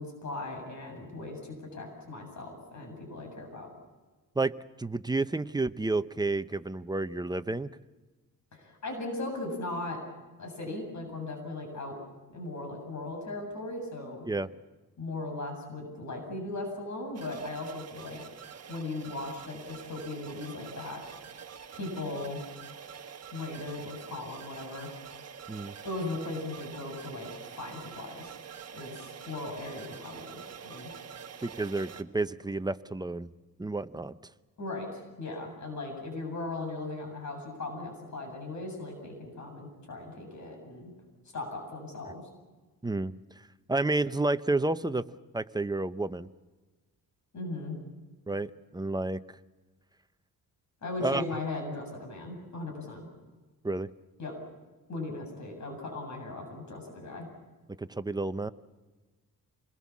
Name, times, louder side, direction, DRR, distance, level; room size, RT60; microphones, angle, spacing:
voice 1, 0.0-3.7 8.5-10.0 10.4-12.0 12.3-14.3 15.0-18.3 18.7-21.0 21.7-22.4 23.3-25.2 25.8-28.4 28.7-30.9 34.6-40.9 41.3-42.2 47.3-47.8 50.8-53.0 54.2-54.3 54.9-57.3, left 2 dB, 55° left, 3 dB, 7.9 m, -38 dB
voice 2, 4.4-7.7 14.3-14.5 25.5-25.7 31.4-33.3 33.6-34.2 42.8-43.1 43.7-45.1 45.3-46.3 48.3-49.2 51.0-51.2 53.6-53.9 57.7-58.5, right 2 dB, 10° right, 12 dB, 0.7 m, -30 dB
sound 1, 17.1-32.0, right 7 dB, 45° right, 1.4 m, -46 dB
27.5 x 20.5 x 7.3 m, 1.3 s
cardioid pair, 120°, 35 cm